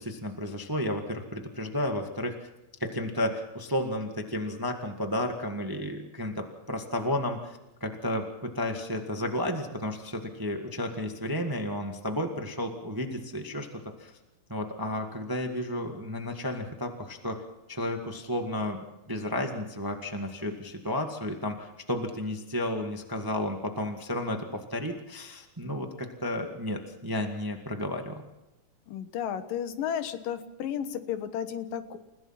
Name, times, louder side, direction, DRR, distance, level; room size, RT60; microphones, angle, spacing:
voice 1, 0.0-2.3 2.8-13.7 14.0-14.1 14.5-17.4 17.7-18.8 19.1-28.3, left 1 dB, 30° right, 4 dB, 0.3 m, -32 dB
voice 2, 28.9-32.0, left 9 dB, 75° left, 10 dB, 2.9 m, -33 dB
29.5 x 16.0 x 5.8 m, 0.98 s
omnidirectional pair, 4.0 m